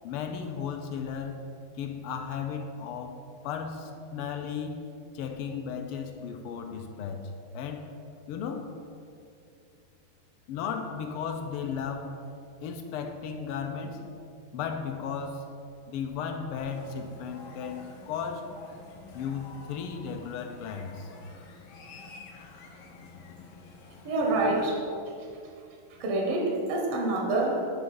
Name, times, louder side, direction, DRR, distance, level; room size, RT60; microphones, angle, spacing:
voice 1, 0.0-1.4 1.8-4.8 5.1-7.9 8.3-8.7 10.5-12.2 12.6-14.0 14.5-15.5 15.9-18.5 19.1-21.1 25.9-26.0, left 6 dB, 90° left, 5 dB, 1.6 m, -35 dB
sound 1, 16.6-24.7, left 3 dB, 70° left, 1.5 m, -49 dB
voice 2, 24.0-25.3 25.9-27.7, right 2 dB, 85° right, 1 dB, 1.9 m, -27 dB
9.0 x 3.5 x 5.4 m, 2.5 s
omnidirectional pair, 2.4 m